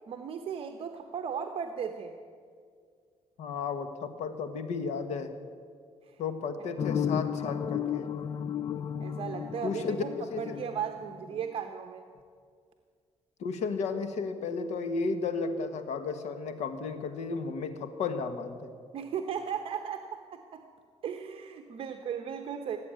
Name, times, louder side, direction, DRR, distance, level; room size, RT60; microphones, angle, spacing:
voice 1, 0.1-2.2 6.0-6.2 6.6-6.7 9.0-10.1 10.4-12.1 18.9-20.6 21.0-22.8, right 7 dB, 55° right, 6 dB, 0.9 m, -36 dB
voice 2, 3.4-5.3 6.2-8.0 9.6-10.0 10.3-10.4 13.4-18.7, left 4 dB, 80° left, 9 dB, 1.4 m, -33 dB
sound 1, 6.8-11.5, left 8 dB, 35° left, 0.4 m, -34 dB
17.5 x 8.2 x 9.1 m, 2.1 s
cardioid pair, 140°, 11 cm